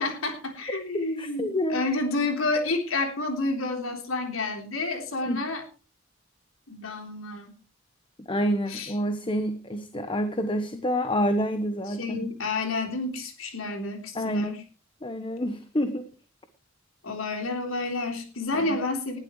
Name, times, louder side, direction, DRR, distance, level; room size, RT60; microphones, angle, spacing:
voice 1, 0.0-5.6 6.7-7.5 8.7-8.9 11.9-14.6 17.0-19.2, left 2 dB, 90° left, 3 dB, 3.6 m, -30 dB
voice 2, 1.2-1.8 5.3-5.4 8.3-12.2 14.1-14.5 15.0-16.1 18.7-18.8, equal, 25° left, 9 dB, 1.0 m, -27 dB
19.5 x 11.5 x 3.2 m, 0.33 s
head